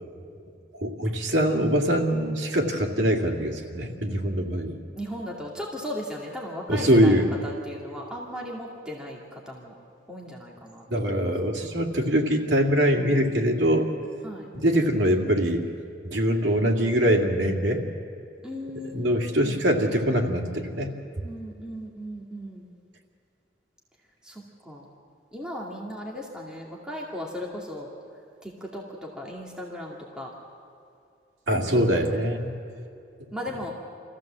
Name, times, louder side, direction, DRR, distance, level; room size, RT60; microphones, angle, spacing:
voice 1, 0.8-4.8 6.7-7.3 10.9-13.9 14.5-15.7 16.0-17.8 18.9-20.9 31.5-32.6, equal, 90° right, 1 dB, 2.3 m, -23 dB
voice 2, 4.9-9.7 10.1-11.3 14.2-14.5 18.4-19.6 21.2-22.7 24.2-24.9 25.3-27.9 28.4-30.3 31.6-32.2 33.3-33.7, equal, 5° right, -3 dB, 2.2 m, -37 dB
25.5 x 15.0 x 7.5 m, 2.6 s
head